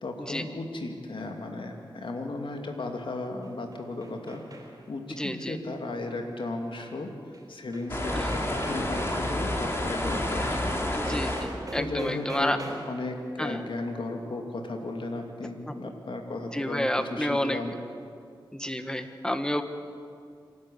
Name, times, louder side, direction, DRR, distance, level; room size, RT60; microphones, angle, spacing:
voice 1, 0.0-4.4 4.9-7.1 7.5-10.8 11.7-17.7, left 2 dB, 70° left, 3 dB, 2.5 m, -35 dB
sound 1, 3.2-5.0 7.3-7.4 7.7-13.1, right 1 dB, 45° right, 4.5 m, -44 dB
voice 2, 5.2-5.5 8.1-8.3 10.9-12.6 13.4-13.6 15.8-15.9 16.5-17.6 18.5-19.6, equal, 10° left, 8 dB, 1.5 m, -30 dB
sound 2, 7.9-11.5, left 1 dB, 30° left, 3.4 m, -29 dB
26.0 x 12.0 x 8.6 m, 2.3 s
cardioid pair, 55°, 9 cm